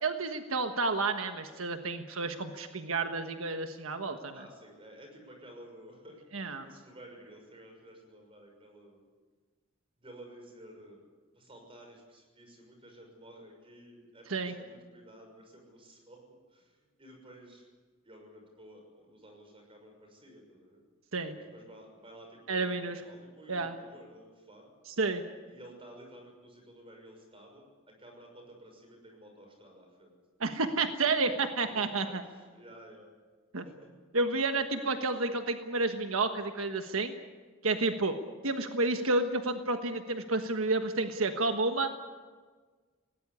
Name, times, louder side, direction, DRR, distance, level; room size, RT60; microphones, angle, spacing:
voice 1, 0.0-4.3 6.3-6.7 14.3-14.5 21.1-21.4 22.5-23.0 23.5-23.7 24.9-25.2 30.4-32.2 33.5-33.6 34.1-37.1 37.6-38.1 38.4-41.9, right 3 dB, 90° right, 6 dB, 1.4 m, -30 dB
voice 2, 4.3-6.2 6.6-9.0 10.0-11.0 11.3-16.2 16.5-17.6 18.0-20.8 21.3-24.7 25.5-30.1 31.6-33.1 33.6-33.9 34.8-35.0 37.8-38.0, right 1 dB, 25° right, 3 dB, 6.3 m, -53 dB
19.5 x 18.0 x 9.7 m, 1.4 s
head